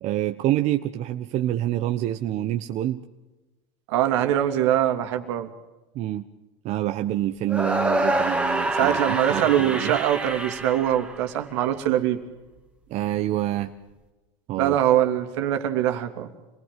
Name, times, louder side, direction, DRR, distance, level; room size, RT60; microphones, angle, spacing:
voice 1, 0.0-3.0 5.9-6.2 6.6-10.0 12.9-13.7 14.5-14.8, right 13 dB, 50° right, 7 dB, 1.2 m, -27 dB
voice 2, 3.9-5.5 8.8-12.2 14.6-16.3, right 11 dB, 75° right, 6 dB, 2.9 m, -23 dB
sound 1, 7.5-11.7, right 1 dB, 10° right, 2.4 m, -26 dB
28.0 x 19.5 x 7.6 m, 1.1 s
supercardioid pair, 115°, 15 cm